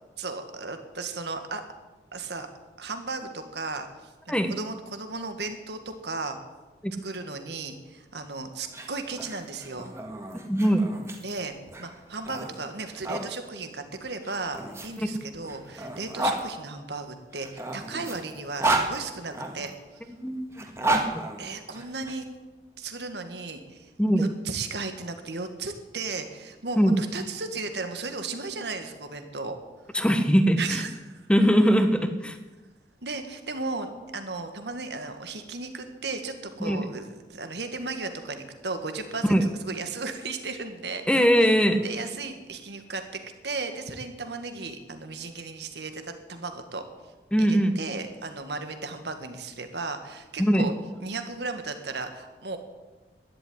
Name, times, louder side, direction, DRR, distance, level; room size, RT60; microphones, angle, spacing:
voice 1, 0.2-1.6 2.1-2.5 2.8-6.4 7.0-9.9 11.2-11.5 11.8-19.7 21.4-22.3 22.8-23.9 24.2-29.6 30.6-31.3 33.0-41.5 41.8-46.8 47.4-50.7 51.0-52.6, right 3 dB, 75° right, 7 dB, 1.9 m, -35 dB
sound 1, 8.6-13.3 14.2-16.4 17.3-19.7 20.5-22.1, right 2 dB, 15° right, 1.7 m, -31 dB
voice 2, 10.4-10.8 20.2-20.6 21.1-21.2 24.0-24.3 26.8-26.9 29.9-30.8 31.3-32.4 36.6-36.8 39.2-39.4 41.1-41.8 47.3-47.7 50.4-50.7, equal, 5° left, 8 dB, 1.1 m, -21 dB
12.5 x 11.0 x 10.0 m, 1.2 s
head